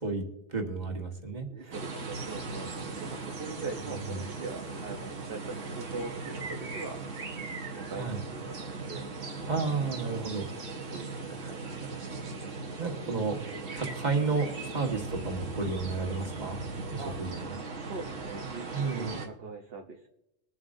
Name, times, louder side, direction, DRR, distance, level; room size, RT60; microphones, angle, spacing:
voice 1, 0.5-1.7 4.1-4.2 8.0-8.2 9.5-10.5 12.8-13.4 13.7-16.6 16.9-17.5 18.7-19.2, right 4 dB, 35° right, 2 dB, 1.7 m, -32 dB
voice 2, 1.4-7.0 7.7-9.1 10.9-11.7 17.0-17.2 17.7-20.1, right 3 dB, 55° right, 2 dB, 1.1 m, -42 dB
sound 1, 1.7-19.3, right 3 dB, 80° right, 1.7 m, -38 dB
22.0 x 7.4 x 2.6 m, 0.88 s
omnidirectional pair, 1.3 m